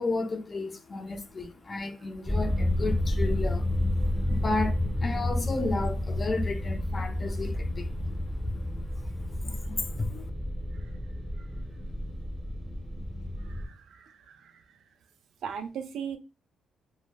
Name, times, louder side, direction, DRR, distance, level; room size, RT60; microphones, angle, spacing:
voice 1, 0.0-8.0 8.9-10.3, left 3 dB, 30° left, 0.5 m, -33 dB
sound 1, 2.3-13.7, left 1 dB, ahead, 0.8 m, -30 dB
voice 2, 13.4-14.6 15.4-16.2, right 7 dB, 70° right, 0.4 m, -38 dB
2.2 x 2.1 x 3.1 m
cardioid pair, 90°, 0 cm